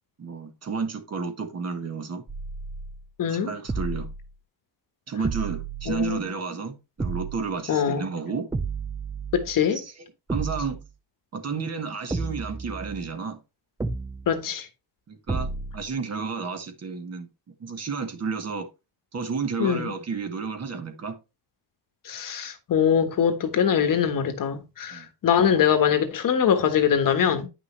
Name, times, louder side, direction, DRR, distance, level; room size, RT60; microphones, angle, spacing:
voice 1, 0.2-2.2 3.3-4.1 5.1-8.5 9.7-9.9 10.3-10.8 11.3-13.4 15.1-18.7 19.1-21.2 24.9-25.1, right 5 dB, 35° right, 1.4 m, -31 dB
sound 1, 2.3-3.1 3.7-4.3 5.2-6.3 7.0-7.6 8.5-9.6 10.3-10.9 12.1-13.2 13.8-14.4 15.3-15.9, right 4 dB, 10° right, 0.3 m, -32 dB
voice 2, 3.2-3.5 5.9-6.2 7.7-8.1 9.3-9.8 14.3-14.7 19.6-19.9 22.0-27.5, left 8 dB, 45° left, 1.3 m, -23 dB
9.7 x 6.0 x 3.2 m
cardioid pair, 165°, 44 cm